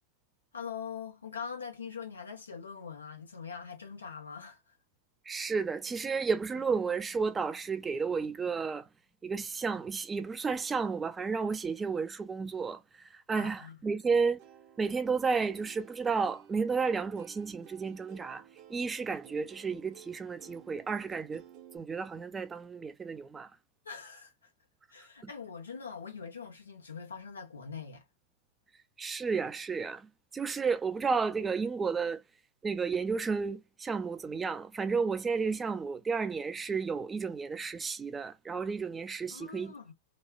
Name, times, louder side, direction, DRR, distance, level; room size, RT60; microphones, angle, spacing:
voice 1, 0.5-4.6 13.4-13.8 23.8-24.5 24.9-28.0 39.3-39.9, left 6 dB, 90° left, 1.0 m, -43 dB
voice 2, 5.3-8.9 9.2-14.4 14.8-18.4 18.7-21.4 21.7-23.5 29.0-32.2 32.6-39.7, right 5 dB, 15° right, 0.4 m, -32 dB
Plucked string instrument, 14.4-21.8, right 10 dB, 50° right, 0.7 m, -55 dB
3.0 x 2.3 x 2.3 m
hypercardioid pair, 100°, 0 cm